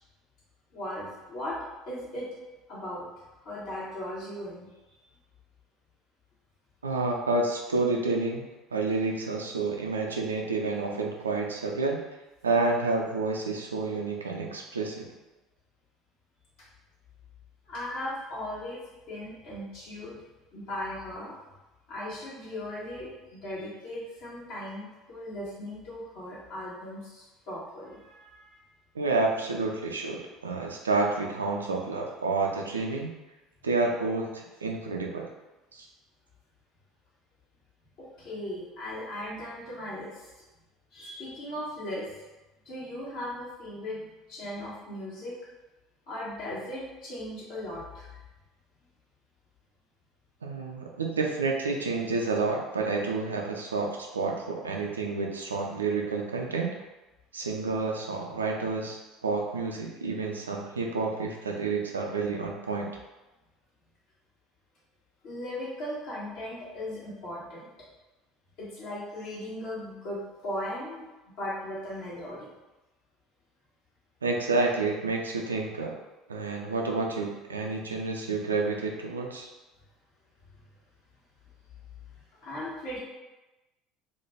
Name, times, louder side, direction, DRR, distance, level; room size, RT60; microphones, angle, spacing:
voice 1, 0.7-1.6 1.9-2.3 2.7-3.1 3.4-4.7 17.7-18.8 19.1-20.2 20.5-21.4 21.9-28.6 38.0-40.3 40.9-42.1 42.6-45.4 46.1-48.2 65.2-67.7 68.6-71.1 71.4-72.5 80.5-80.6 82.1-83.0, left 1 dB, 55° left, -7 dB, 1.1 m, -38 dB
voice 2, 6.8-12.0 12.4-15.1 28.9-33.1 33.6-35.3 35.7-35.9 50.4-56.7 57.3-62.9 74.2-75.9 76.3-79.5, right 3 dB, 80° right, 1 dB, 0.3 m, -29 dB
2.5 x 2.2 x 3.2 m, 1.1 s
figure-of-eight pair, 65°, 0 cm